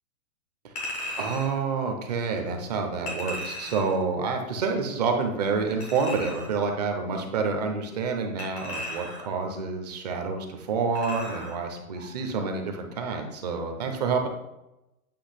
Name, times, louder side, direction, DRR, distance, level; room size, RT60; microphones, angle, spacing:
Chink clink, 0.8-1.5 3.1-4.0 5.8-6.6 8.4-9.4 10.9-11.6 12.0-12.1, left 1 dB, 5° left, 0.4 m, -36 dB
voice 1, 1.2-14.3, right 4 dB, 30° right, 4 dB, 0.7 m, -28 dB
8.6 x 2.9 x 5.8 m, 0.93 s
hypercardioid pair, 170°, 44 cm